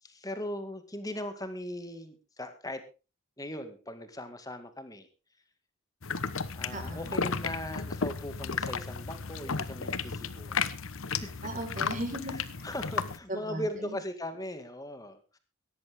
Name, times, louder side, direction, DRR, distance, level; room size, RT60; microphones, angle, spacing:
voice 1, 0.0-2.9 3.4-5.1 6.5-10.7 11.0-11.5 12.3-15.4, left 1 dB, 15° left, 9 dB, 2.0 m, -39 dB
sound 1, 6.0-13.2, left 5 dB, 75° left, 1.1 m, -34 dB
voice 2, 6.7-7.1 11.4-12.3 13.3-14.0, right 1 dB, 35° right, 5 dB, 4.7 m, -37 dB
17.5 x 14.0 x 3.7 m, 0.32 s
head